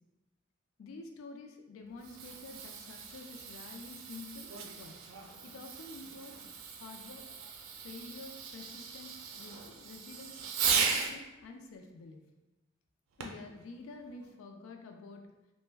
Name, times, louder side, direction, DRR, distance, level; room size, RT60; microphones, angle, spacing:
voice 1, 0.8-5.0 5.4-6.5 6.8-7.3 7.8-10.4 10.7-12.2 13.2-15.3, left 3 dB, 85° left, 4 dB, 0.4 m, -49 dB
Fireworks, 1.8-11.2 13.2-13.5 14.2-14.3, right 6 dB, 80° right, 0.4 m, -37 dB
3.0 x 2.1 x 3.3 m, 1.0 s
head